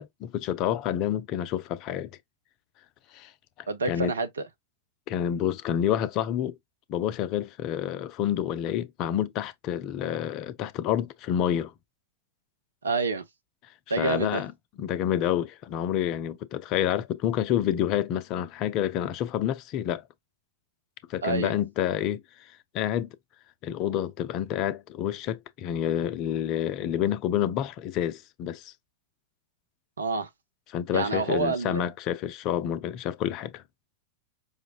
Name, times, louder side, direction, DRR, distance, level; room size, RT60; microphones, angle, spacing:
voice 1, 0.0-2.1 3.1-3.3 3.6-4.1 5.1-6.6 6.9-11.7 14.0-14.5 14.8-20.0 21.1-23.2 23.6-28.7 30.7-33.6, left 10 dB, 40° left, 0.4 m, -28 dB
voice 2, 3.7-4.4 12.8-13.2 13.9-14.4 21.2-21.6 30.0-30.3 30.9-31.8, right 4 dB, 75° right, 0.5 m, -28 dB
5.0 x 2.0 x 2.3 m
figure-of-eight pair, 90°, 0 cm